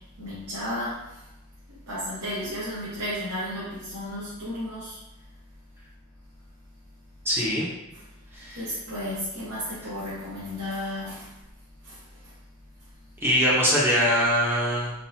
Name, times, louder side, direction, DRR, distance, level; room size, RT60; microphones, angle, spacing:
voice 1, 0.2-1.0 1.9-5.0 8.5-11.3 11.8-12.0, left 1 dB, 90° right, -12 dB, 1.3 m, -33 dB
voice 2, 7.2-7.7 8.3-8.7 13.2-14.9, equal, 10° right, -7 dB, 0.8 m, -23 dB
4.1 x 2.5 x 2.7 m, 0.96 s
head